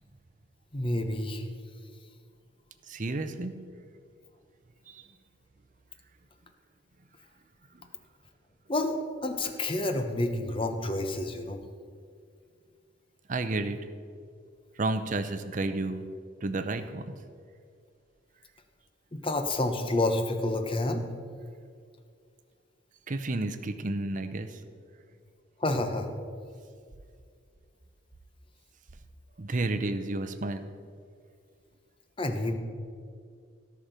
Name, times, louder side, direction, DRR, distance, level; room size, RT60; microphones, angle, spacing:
voice 1, 0.7-1.4 8.7-11.6 19.1-21.1 25.6-26.1 32.2-32.5, left 2 dB, 25° left, 6 dB, 0.9 m, -29 dB
voice 2, 2.9-3.6 4.9-5.1 7.7-7.9 13.3-13.8 14.8-16.1 16.4-17.1 23.1-24.6 29.4-30.7, right 2 dB, 40° right, 9 dB, 0.7 m, -31 dB
17.5 x 5.9 x 5.2 m, 2.2 s
head